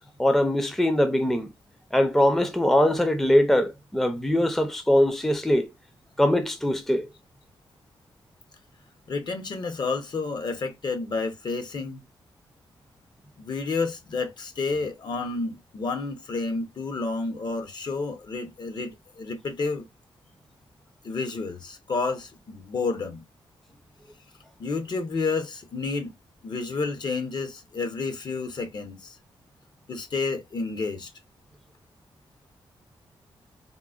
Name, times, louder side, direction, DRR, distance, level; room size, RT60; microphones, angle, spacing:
voice 1, 0.2-1.5 1.9-5.7 6.2-7.1, left 1 dB, 5° left, 0.5 m, -22 dB
voice 2, 9.1-12.0 13.4-19.8 21.0-23.2 24.6-26.1 26.4-29.2 29.9-31.1, left 4 dB, 50° left, 0.7 m, -30 dB
3.7 x 2.1 x 2.3 m
cardioid pair, 100°, 9 cm